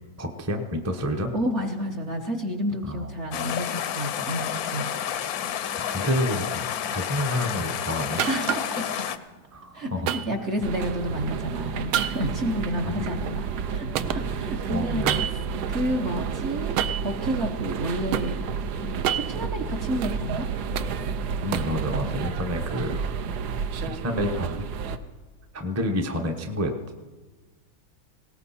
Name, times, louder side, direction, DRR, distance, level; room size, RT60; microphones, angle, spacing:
voice 1, 0.2-1.3 2.8-3.1 5.9-8.2 9.5-10.1 12.3-12.4 13.0-13.1 14.0-15.2 21.4-23.0 23.9-24.6 25.5-26.7, left 1 dB, 15° right, 3 dB, 0.5 m, -29 dB
voice 2, 1.3-4.9 8.3-9.1 9.7-15.0 15.7-16.8 17.0-18.4 18.8-20.5, equal, 50° right, 2 dB, 0.9 m, -30 dB
sound 1, 3.3-9.2, left 9 dB, 70° left, 0.8 m, -30 dB
sound 2, 8.2-8.8 10.1-11.0 11.9-13.7 13.9-15.6 16.8-17.2 17.7-18.3 18.9-20.2 20.5-21.8, right 10 dB, 85° right, 1.5 m, -29 dB
sound 3, 10.6-25.0, right 6 dB, 65° right, 1.1 m, -31 dB
19.5 x 17.5 x 4.2 m, 1.3 s
omnidirectional pair, 2.2 m